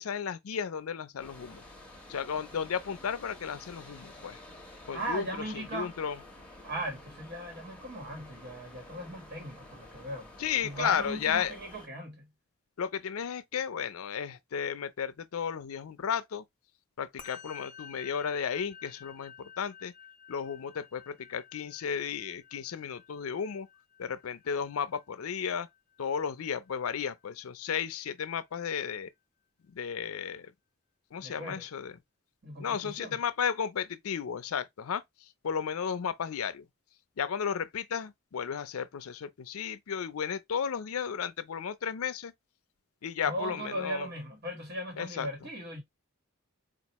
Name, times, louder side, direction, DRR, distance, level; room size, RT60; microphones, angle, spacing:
voice 1, 0.0-1.6 2.1-4.4 4.9-5.3 5.7-6.2 10.4-11.5 12.8-16.4 17.0-19.9 20.3-23.7 24.0-25.7 26.0-29.1 29.7-30.5 31.1-31.9 32.6-35.0 35.4-36.7 37.2-42.3 43.0-44.1 45.0-45.3, left 7 dB, 80° left, 0.5 m, -34 dB
sound 1, 1.2-11.9, left 1 dB, 5° left, 0.9 m, -50 dB
voice 2, 4.9-5.9 6.6-10.3 10.6-12.3 31.2-31.7 32.4-33.2 43.2-45.8, right 1 dB, 45° right, 1.4 m, -38 dB
Musical instrument, 17.2-26.7, left 7 dB, 40° left, 0.6 m, -52 dB
4.4 x 2.4 x 2.9 m
head